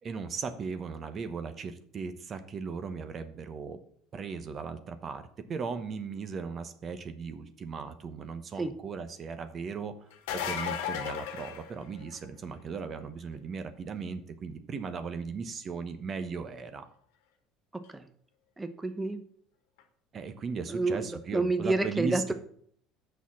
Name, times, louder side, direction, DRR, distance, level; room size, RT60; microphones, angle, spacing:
voice 1, 0.0-3.8 4.1-16.8 20.1-22.3, right 5 dB, 40° right, 10 dB, 0.9 m, -37 dB
sound 1, 10.1-12.3 17.9-18.0 19.8-19.9, left 8 dB, 75° left, 1.2 m, -35 dB
voice 2, 18.6-19.2 20.7-22.3, right 2 dB, 15° right, 9 dB, 0.9 m, -29 dB
6.2 x 5.7 x 7.2 m, 0.62 s
hypercardioid pair, 70°, 0 cm